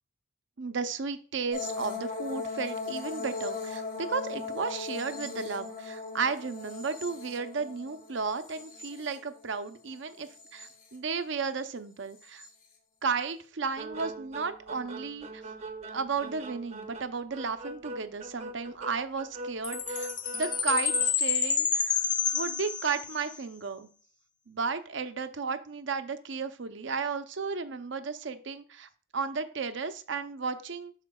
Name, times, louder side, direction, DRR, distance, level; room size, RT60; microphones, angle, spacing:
voice 1, 0.6-12.4 13.0-15.4 15.9-22.0 22.3-23.9 24.5-30.9, right 5 dB, 60° right, 10 dB, 0.6 m, -34 dB
sound 1, 1.5-9.7 10.1-10.9 12.2-12.5, left 4 dB, 45° left, 2.4 m, -38 dB
sound 2, 13.8-21.1, right 2 dB, 30° right, 0.8 m, -41 dB
Chime, 19.6-23.4, left 6 dB, 20° left, 0.4 m, -29 dB
12.0 x 4.4 x 2.3 m, 0.42 s
head